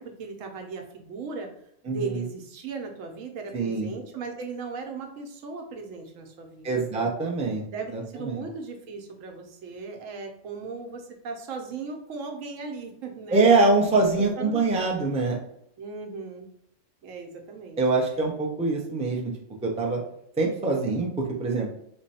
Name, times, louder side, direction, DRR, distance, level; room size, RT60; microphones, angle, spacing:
voice 1, 0.0-1.5 1.9-7.1 7.7-13.5 14.4-14.6 15.8-16.5 17.0-17.8, right 4 dB, 90° right, 4 dB, 1.1 m, -37 dB
voice 2, 1.9-2.2 3.5-3.9 6.6-7.6 7.9-8.4 13.3-15.4 17.8-19.3 19.6-20.0 20.4-21.7, right 3 dB, 10° right, -1 dB, 0.3 m, -24 dB
3.2 x 2.2 x 4.1 m, 0.74 s
omnidirectional pair, 1.3 m